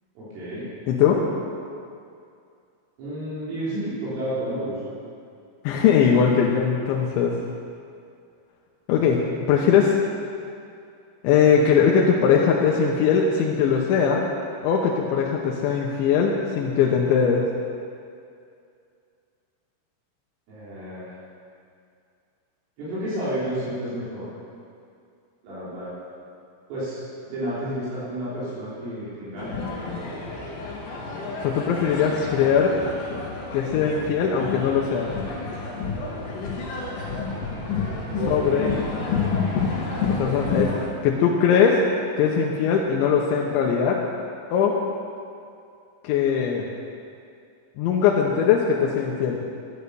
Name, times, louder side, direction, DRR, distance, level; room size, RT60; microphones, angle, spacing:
voice 1, 0.2-0.7 3.0-4.9 20.5-21.2 22.8-24.3 25.4-25.9 26.7-29.8 38.2-38.8, right 1 dB, 70° right, -10 dB, 6.2 m, -31 dB
voice 2, 0.9-1.2 5.6-7.4 8.9-10.0 11.2-14.2 14.6-17.4 31.4-32.8 33.5-35.1 38.3-38.7 40.1-40.7 41.0-41.8 42.2-44.0 44.5-44.8 46.0-46.7 47.8-49.4, left 7 dB, 75° left, -1 dB, 3.0 m, -20 dB
sound 1, 29.4-40.9, left 4 dB, 50° left, 3.4 m, -29 dB
12.5 x 11.0 x 6.8 m, 2.4 s
omnidirectional pair, 6.0 m